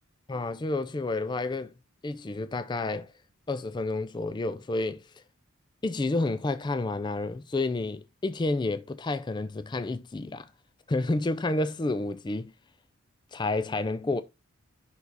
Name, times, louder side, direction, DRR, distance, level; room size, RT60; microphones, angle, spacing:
voice 1, 0.3-1.7 2.0-3.1 3.5-5.2 5.8-10.5 10.9-12.5 13.3-14.2, left 2 dB, 20° left, 0.3 m, -30 dB
5.6 x 4.7 x 3.9 m
head